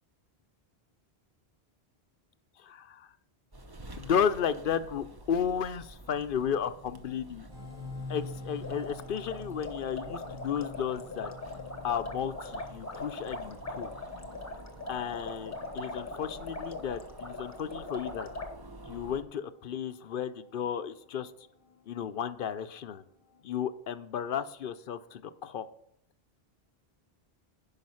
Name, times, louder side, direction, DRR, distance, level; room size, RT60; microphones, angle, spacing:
voice 1, 2.6-3.1 4.0-7.5 8.1-11.3 11.8-13.9 14.9-18.3 18.9-21.3 21.9-23.0 23.4-25.7, left 8 dB, 60° left, 12 dB, 0.7 m, -33 dB
sound 1, 3.5-19.2, right 1 dB, 25° right, 0.7 m, -49 dB
sound 2, 7.5-23.7, left 2 dB, 45° right, 3.7 m, -49 dB
sound 3, 8.6-18.5, left 2 dB, 15° left, 0.9 m, -41 dB
10.5 x 5.6 x 5.6 m, 0.69 s
omnidirectional pair, 1.1 m